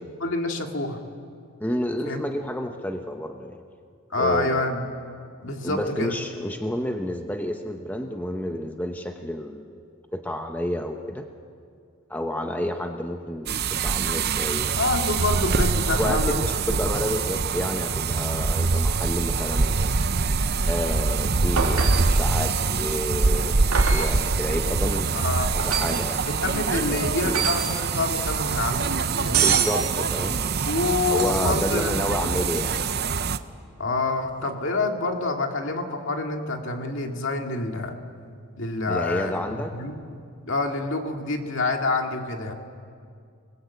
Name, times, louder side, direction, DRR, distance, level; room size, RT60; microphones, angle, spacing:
voice 1, 0.2-1.0 2.1-2.2 4.1-4.9 5.4-6.1 14.8-16.4 16.7-16.8 25.1-25.6 26.2-29.5 30.6-32.0 33.8-38.0 38.6-40.0 40.4-42.5, left 3 dB, 60° left, 3 dB, 2.3 m, -27 dB
voice 2, 1.6-3.6 4.2-4.7 5.6-9.8 10.1-11.3 12.1-14.8 15.9-20.0 20.7-26.2 26.7-27.4 29.4-30.4 31.1-32.8 38.9-39.7, left 1 dB, 10° left, 4 dB, 0.9 m, -30 dB
sound 1, 13.5-33.4, right 4 dB, 45° right, 0.7 m, -24 dB
sound 2, 21.6-22.2 23.7-24.2 25.6-26.0 27.3-27.8 29.3-29.8 31.1-31.6 34.4-34.5, right 7 dB, 85° right, 2.6 m, -25 dB
29.0 x 20.5 x 8.4 m, 2.3 s
head